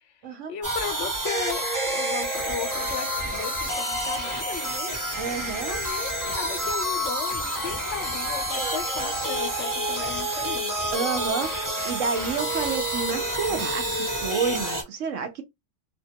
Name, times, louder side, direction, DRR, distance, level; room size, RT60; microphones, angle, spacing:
voice 1, 0.5-4.9 5.7-10.8, left 8 dB, 75° left, 1.0 m, -36 dB
sound 1, 0.6-14.8, right 1 dB, 15° right, 0.9 m, -28 dB
voice 2, 5.2-5.8 10.9-15.4, right 5 dB, 85° right, 1.1 m, -29 dB
2.8 x 2.2 x 2.7 m
omnidirectional pair, 1.3 m